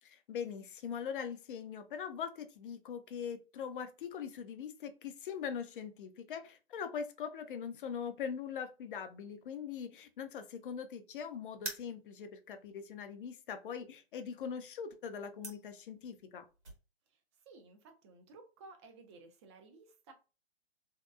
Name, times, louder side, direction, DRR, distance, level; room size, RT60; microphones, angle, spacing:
voice 1, 0.0-16.4, left 7 dB, 55° left, 8 dB, 0.5 m, -42 dB
sound 1, 11.5-16.8, right 2 dB, 90° right, 1.3 m, -48 dB
voice 2, 17.5-20.1, right 3 dB, 25° right, 5 dB, 0.5 m, -56 dB
2.7 x 2.2 x 2.3 m, 0.32 s
figure-of-eight pair, 130°, 32 cm